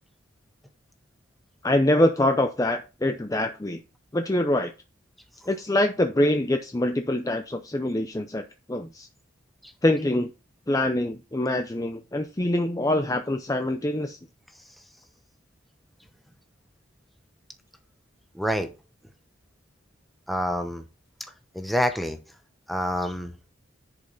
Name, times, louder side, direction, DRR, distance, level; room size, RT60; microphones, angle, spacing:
voice 1, 1.6-3.8 4.1-4.7 5.5-8.4 8.7-9.1 9.8-10.3 10.7-14.2, left 1 dB, 15° left, 0.5 m, -24 dB
voice 2, 18.4-18.7 20.3-20.8 21.5-22.2 22.7-23.3, equal, ahead, 0.9 m, -26 dB
10.5 x 5.3 x 4.0 m
head